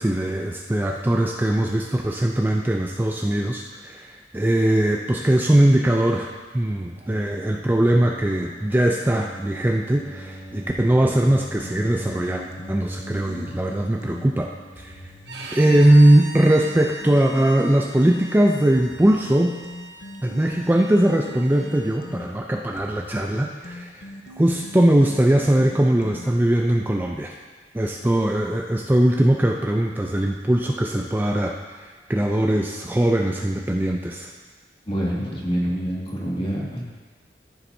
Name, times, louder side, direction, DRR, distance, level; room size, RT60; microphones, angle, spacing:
voice 1, 0.0-12.4 12.7-14.5 14.8-14.9 15.5-19.6 20.2-24.1 24.4-27.3 27.7-34.3, right 1 dB, 10° right, 1 dB, 0.4 m, -20 dB
sound 1, 6.9-15.5, right 1 dB, 55° right, 3.0 m, -41 dB
sound 2, 10.8-14.3 14.8-18.3 18.8-26.6, left 2 dB, 75° left, 0.9 m, -41 dB
Bowed string instrument, 15.3-22.0, right 3 dB, 75° right, 1.2 m, -40 dB
voice 2, 34.9-36.8, equal, 35° left, -5 dB, 2.0 m, -26 dB
14.0 x 7.2 x 2.7 m, 1.4 s
head